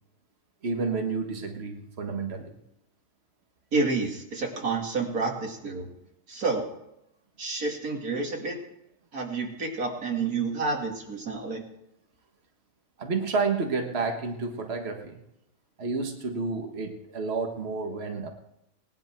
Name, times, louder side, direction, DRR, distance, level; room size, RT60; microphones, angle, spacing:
voice 1, 0.6-2.6 13.0-15.2 15.8-18.3, right 4 dB, 45° right, 3 dB, 1.7 m, -30 dB
voice 2, 3.7-5.9 6.3-6.7 7.4-8.6 9.1-11.6, right 4 dB, 90° right, 1 dB, 2.7 m, -29 dB
19.0 x 11.0 x 4.6 m, 0.83 s
omnidirectional pair, 1.5 m